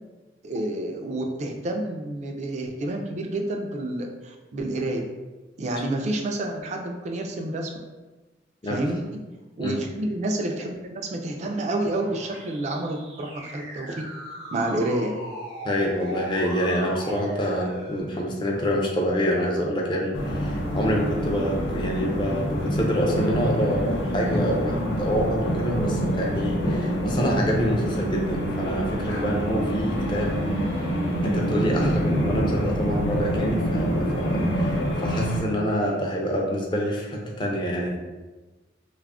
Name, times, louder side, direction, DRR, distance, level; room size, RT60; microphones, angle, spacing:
voice 1, 0.4-5.0 5.6-7.7 8.7-9.0 9.6-14.0 14.5-15.2, right 1 dB, 40° right, 3 dB, 0.3 m, -29 dB
sound 1, 11.5-18.0, right 1 dB, 80° right, 0.9 m, -39 dB
voice 2, 15.6-30.4 31.2-38.0, equal, 25° left, -1 dB, 0.4 m, -26 dB
sound 2, 20.1-35.4, equal, 80° left, 0.5 m, -26 dB
2.3 x 2.0 x 3.4 m, 1.2 s
head